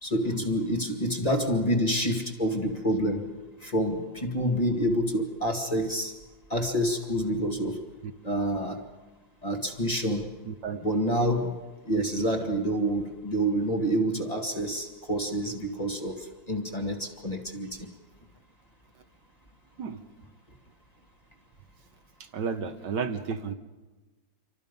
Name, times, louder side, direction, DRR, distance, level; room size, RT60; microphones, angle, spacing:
voice 1, 0.0-6.1 6.5-7.8 8.2-8.9 9.4-10.3 10.8-17.9, equal, 20° left, 3 dB, 2.0 m, -28 dB
voice 2, 10.5-10.8 11.9-12.5 19.8-20.0 22.2-23.5, right 6 dB, 65° right, 8 dB, 1.6 m, -33 dB
28.5 x 24.5 x 5.4 m, 1.2 s
omnidirectional pair, 2.1 m